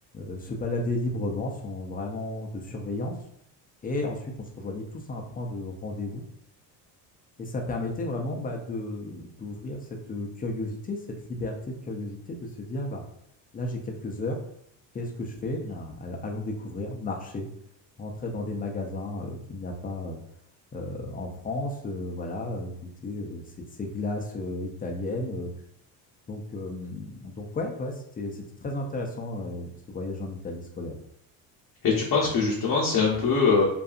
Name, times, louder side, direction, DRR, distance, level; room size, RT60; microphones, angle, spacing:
voice 1, 0.1-3.1 3.8-6.3 7.4-11.0 11.3-13.0 13.5-14.4 14.9-17.5 18.0-20.2 20.7-22.7 23.0-23.4 23.8-25.5 26.3-31.0, left 2 dB, 20° left, 2 dB, 0.5 m, -33 dB
voice 2, 31.8-33.6, left 4 dB, 50° left, -3 dB, 0.7 m, -22 dB
2.6 x 2.4 x 2.4 m, 0.72 s
cardioid pair, 95°, 44 cm